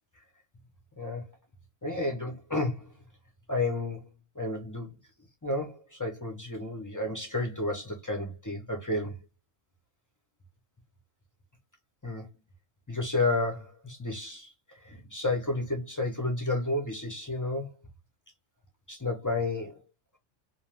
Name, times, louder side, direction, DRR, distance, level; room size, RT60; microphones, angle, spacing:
voice 1, 1.8-2.9 3.5-4.1 4.4-4.9 5.4-9.2 12.0-12.3 12.9-14.5 14.8-17.7 18.9-19.8, left 2 dB, 30° left, 0.3 m, -31 dB
2.5 x 2.2 x 3.2 m
omnidirectional pair, 1.3 m